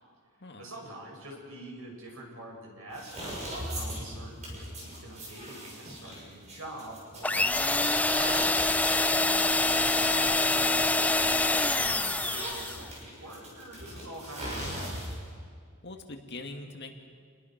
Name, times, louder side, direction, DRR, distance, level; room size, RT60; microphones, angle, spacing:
voice 1, 0.6-8.6 9.5-15.0, right 1 dB, 70° right, -1 dB, 7.3 m, -45 dB
sound 1, 2.9-15.3, right 1 dB, 30° right, 6.7 m, -41 dB
sound 2, 7.2-12.9, left 2 dB, 5° left, 0.5 m, -25 dB
voice 2, 9.2-9.6 15.8-16.9, left 2 dB, 50° left, 3 dB, 2.2 m, -43 dB
29.5 x 21.0 x 6.0 m, 2.1 s
head